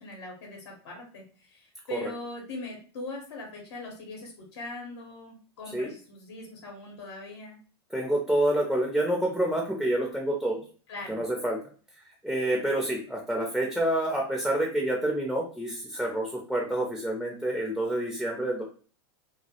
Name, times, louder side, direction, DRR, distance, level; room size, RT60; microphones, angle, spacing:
voice 1, 0.0-7.6 10.9-11.2, left 2 dB, 75° left, 0 dB, 0.8 m, -41 dB
voice 2, 7.9-10.6 11.1-11.6 12.2-18.6, right 1 dB, ahead, -2 dB, 0.5 m, -28 dB
2.1 x 2.0 x 2.7 m, 0.41 s
hypercardioid pair, 110°, 14 cm